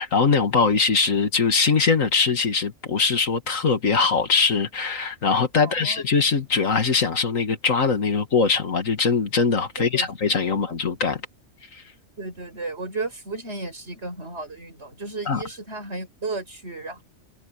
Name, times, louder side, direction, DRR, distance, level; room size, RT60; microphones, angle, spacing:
voice 1, 0.0-11.2 11.7-11.8 15.3-15.4, left 4 dB, 80° left, 2.4 m, -22 dB
voice 2, 5.6-6.0 9.8-10.1 12.2-17.0, right 3 dB, 55° right, 6.3 m, -34 dB
omnidirectional pair, 1.4 m